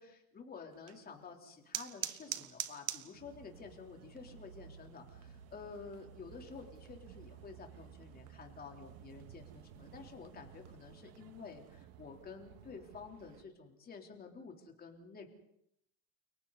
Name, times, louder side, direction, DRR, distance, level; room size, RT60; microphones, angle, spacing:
voice 1, 0.0-15.3, left 5 dB, 20° left, 2 dB, 3.8 m, -51 dB
sound 1, 0.7-11.8, right 11 dB, 30° right, 1.5 m, -49 dB
sound 2, 3.1-13.4, right 9 dB, 70° right, 2.2 m, -56 dB
30.0 x 30.0 x 4.2 m, 0.75 s
supercardioid pair, 155°, 50 cm